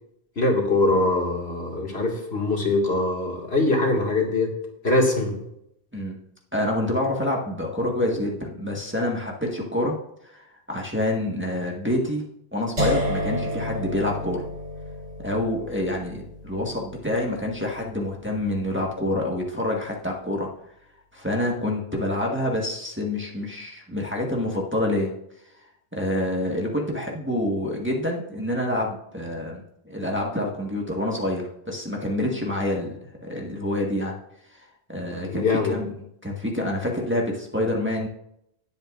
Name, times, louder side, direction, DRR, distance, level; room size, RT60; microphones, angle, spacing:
voice 1, 0.4-4.5 4.8-5.4 35.3-35.8, left 2 dB, 70° left, -1 dB, 2.4 m, -22 dB
voice 2, 6.5-10.0 10.2-12.2 12.5-14.5 15.2-20.5 21.1-25.1 25.9-34.1 34.5-35.9 36.2-38.1, left 1 dB, 10° right, -2 dB, 1.6 m, -27 dB
sound 1, 12.8-18.7, equal, 75° right, 3.4 m, -31 dB
18.5 x 8.2 x 2.5 m, 0.77 s
omnidirectional pair, 1.1 m